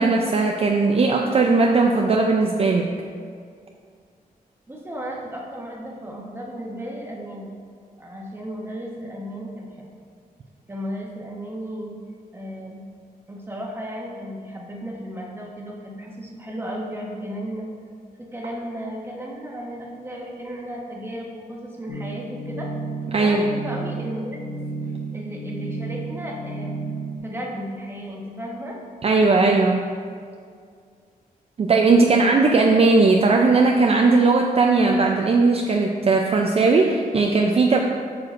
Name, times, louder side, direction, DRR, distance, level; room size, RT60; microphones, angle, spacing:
voice 1, 0.0-2.9 23.1-23.4 29.0-29.9 31.6-37.8, right 3 dB, 40° right, 1 dB, 0.4 m, -18 dB
voice 2, 4.7-7.6 7.9-9.9 10.7-12.0 12.3-12.8 13.3-17.7 18.2-22.7 23.2-24.4 24.8-26.7 27.2-28.8, equal, 15° right, -2 dB, 1.0 m, -34 dB
sound 1, 21.9-27.2, right 3 dB, 60° left, 1.0 m, -32 dB
8.9 x 5.8 x 2.5 m, 2.1 s
wide cardioid pair, 130°, 16 cm